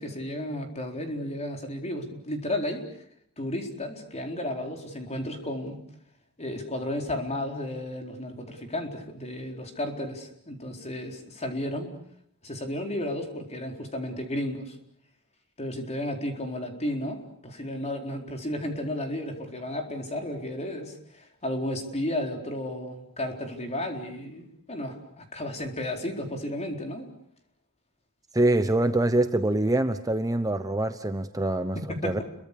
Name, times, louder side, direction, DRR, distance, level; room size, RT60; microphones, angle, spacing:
voice 1, 0.0-3.0 3.4-5.8 6.4-12.0 12.4-14.8 15.6-27.1 31.7-32.2, left 1 dB, 30° left, 3 dB, 4.3 m, -33 dB
voice 2, 28.3-31.8 32.0-32.2, right 1 dB, 15° right, 9 dB, 1.0 m, -24 dB
30.0 x 23.5 x 6.9 m, 0.70 s
head